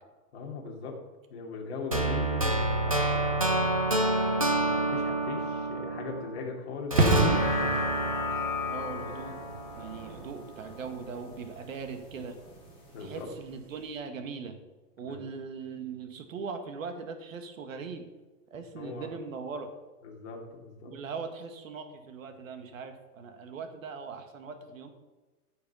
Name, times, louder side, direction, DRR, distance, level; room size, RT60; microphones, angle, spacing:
voice 1, 0.3-0.9 1.3-3.8 4.4-7.4 12.9-13.3 15.0-15.2 18.8-19.1 20.0-20.9, left 4 dB, 45° left, -1 dB, 2.8 m, -39 dB
sound 1, 1.9-6.4 6.9-10.0, right 1 dB, 25° right, 0.4 m, -28 dB
sound 2, 7.0-13.5 13.7-13.9, right 3 dB, 40° right, 1.8 m, -32 dB
sound 3, 7.2-11.7 12.1-12.2, left 5 dB, 10° left, 1.2 m, -36 dB
voice 2, 8.7-9.4 9.8-12.4 13.0-14.6 15.0-18.0 18.5-19.7 20.8-24.9, right 5 dB, 60° right, 7 dB, 1.9 m, -40 dB
14.5 x 6.9 x 5.6 m, 1.2 s
hypercardioid pair, 180°, 46 cm